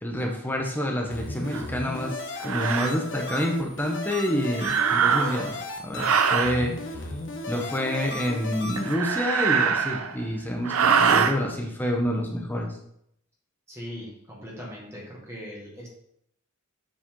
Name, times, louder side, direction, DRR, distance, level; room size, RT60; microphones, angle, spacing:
voice 1, 0.0-2.2 2.4-6.7 7.5-12.7, equal, 10° left, 1 dB, 0.7 m, -28 dB
sound 1, 1.1-8.9, left 2 dB, 60° left, 1.0 m, -35 dB
sound 2, 1.5-1.7 2.4-2.9 4.6-5.5 6.0-6.6 8.8-10.2 10.6-11.3, right 6 dB, 90° right, 0.6 m, -23 dB
voice 2, 13.7-15.9, equal, 15° right, -4 dB, 1.7 m, -40 dB
7.4 x 4.1 x 3.7 m, 0.73 s
head